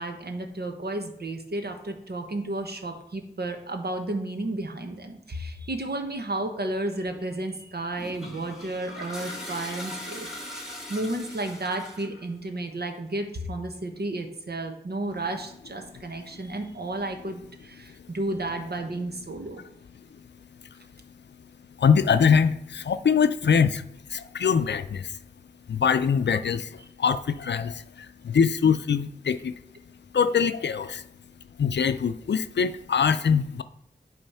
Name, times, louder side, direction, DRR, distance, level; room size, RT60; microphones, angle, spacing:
voice 1, 0.0-10.3 10.9-19.6, right 2 dB, 65° right, 4 dB, 1.1 m, -32 dB
Toilet flush, 7.9-12.2, left 1 dB, 5° right, 2.1 m, -39 dB
voice 2, 21.8-23.8 24.1-25.2 25.7-29.5 30.1-31.0 31.6-33.6, left 6 dB, 85° left, 12 dB, 0.4 m, -23 dB
8.8 x 3.2 x 5.5 m, 0.78 s
wide cardioid pair, 60°, 18 cm